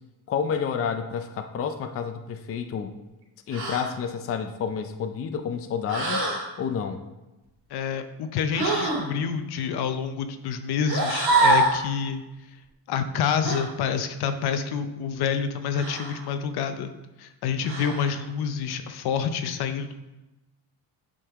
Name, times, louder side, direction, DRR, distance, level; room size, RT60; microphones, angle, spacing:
voice 1, 0.3-2.9 3.5-6.2 6.6-7.0, left 6 dB, 35° left, 7 dB, 0.5 m, -29 dB
sound 1, 3.5-3.9 5.9-6.5 8.5-9.1 10.8-11.8 13.4-13.6 15.7-16.2 17.6-18.1, right 2 dB, 75° right, 2.8 m, -24 dB
voice 2, 7.7-12.2 12.9-16.9 17.2-19.9, left 7 dB, 75° left, 9 dB, 0.7 m, -28 dB
8.6 x 5.4 x 3.6 m, 1.0 s
cardioid pair, 160°, 39 cm